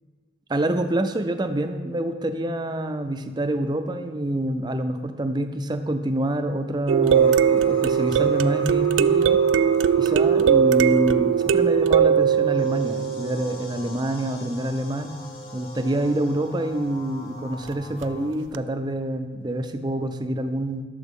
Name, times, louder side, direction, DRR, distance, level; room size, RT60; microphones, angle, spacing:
voice 1, 0.5-9.4 10.0-15.2 15.5-20.9, right 1 dB, 25° right, 8 dB, 0.5 m, -26 dB
sound 1, 6.9-13.8 18.0-18.1 18.5-18.6, right 7 dB, 80° right, 0.3 m, -20 dB
sound 2, 7.0-18.3, left 2 dB, 50° left, 2.2 m, -41 dB
12.0 x 7.0 x 3.7 m, 1.5 s
head